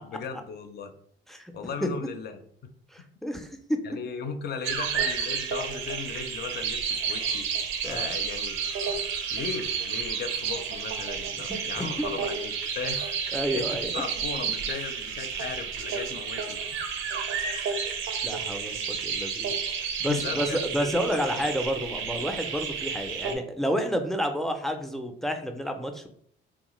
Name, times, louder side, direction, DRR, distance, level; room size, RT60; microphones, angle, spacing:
voice 1, 0.0-0.9 1.5-2.3 2.6-2.7 3.0-3.1 3.8-8.6 8.9-13.2 13.5-16.9 20.0-21.5, left 5 dB, 55° left, 8 dB, 0.5 m, -37 dB
voice 2, 2.9-3.8 7.8-8.1 11.3-12.2 13.3-13.9 18.2-19.5 19.8-26.1, equal, ahead, 5 dB, 0.4 m, -30 dB
sound 1, 4.6-23.4, right 6 dB, 85° right, 0.5 m, -31 dB
3.1 x 2.1 x 3.0 m, 0.64 s
cardioid pair, 90°, 20 cm